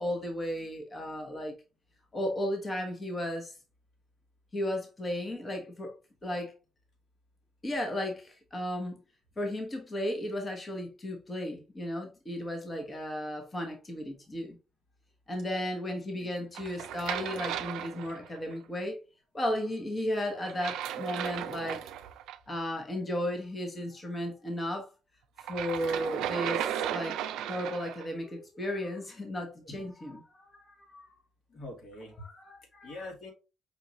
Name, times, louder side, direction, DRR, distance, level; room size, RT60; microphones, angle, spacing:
voice 1, 0.0-1.5 2.1-3.6 4.5-5.9 6.2-6.5 7.6-9.0 9.4-14.6 15.3-19.0 19.3-21.9 22.5-24.9 25.4-27.2 27.5-31.1 32.2-33.0, left 1 dB, 30° left, 1.0 m, -35 dB
sound 1, 16.5-18.5 20.4-22.4 25.4-28.1, right 10 dB, 90° right, 0.3 m, -35 dB
voice 2, 31.5-32.1 32.8-33.3, left 2 dB, 65° left, 1.7 m, -44 dB
5.3 x 2.5 x 2.9 m
cardioid pair, 90°, 0 cm